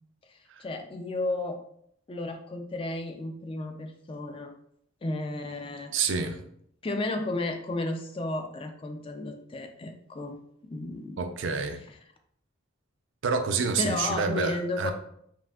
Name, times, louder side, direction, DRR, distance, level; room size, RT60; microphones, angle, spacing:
voice 1, 0.3-1.6 2.1-4.5 5.0-5.9 6.8-10.4 10.7-11.3 13.8-14.9, left 2 dB, 25° left, 5 dB, 0.3 m, -33 dB
voice 2, 5.9-6.4 11.2-11.8 13.2-14.9, right 5 dB, 65° right, 7 dB, 0.4 m, -28 dB
5.7 x 2.5 x 2.3 m, 0.69 s
head